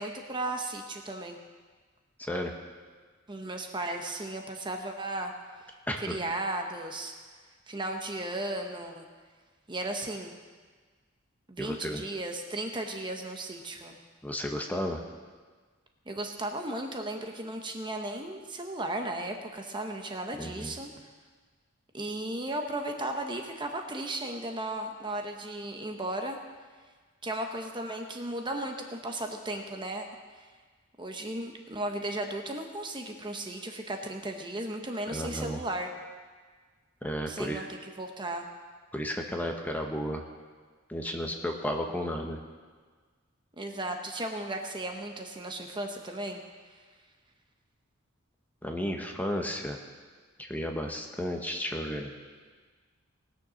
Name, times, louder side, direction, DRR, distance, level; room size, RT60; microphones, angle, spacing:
voice 1, 0.0-1.4 3.3-5.3 6.0-7.1 7.7-9.1 9.7-10.4 11.5-14.0 16.1-20.9 21.9-26.4 27.2-30.1 31.0-35.9 37.3-38.5 43.6-46.4, right 1 dB, 25° right, 4 dB, 0.9 m, -35 dB
voice 2, 2.2-2.5 5.9-6.1 11.6-12.0 14.2-15.0 20.4-20.7 35.1-35.6 37.0-37.7 38.9-40.2 40.9-42.4 48.6-49.8 50.5-52.1, equal, 10° left, 3 dB, 1.0 m, -33 dB
19.0 x 6.8 x 6.3 m, 1.5 s
head